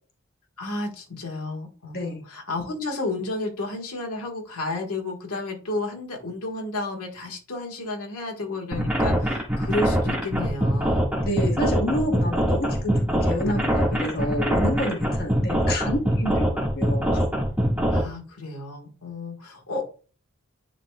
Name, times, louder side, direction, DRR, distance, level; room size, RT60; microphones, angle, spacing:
voice 1, 0.6-11.2 11.8-12.2 15.4-15.6 17.9-19.8, left 2 dB, 90° left, 1 dB, 1.6 m, -32 dB
voice 2, 1.9-2.2 11.2-17.2, left 1 dB, 45° left, 0 dB, 1.5 m, -28 dB
sound 1, 8.7-18.0, equal, 5° right, 1.7 m, -23 dB
9.9 x 4.0 x 2.3 m, 0.35 s
head